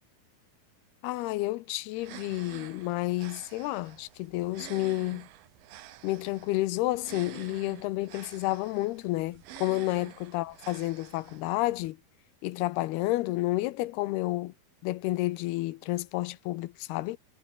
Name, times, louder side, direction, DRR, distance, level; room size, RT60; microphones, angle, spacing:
voice 1, 1.0-5.3 6.0-12.0 12.4-14.5 14.8-17.2, left 18 dB, 80° left, 2.7 m, -30 dB
sound 1, 1.9-11.9, right 14 dB, 70° right, 2.7 m, -49 dB
omnidirectional pair, 4.7 m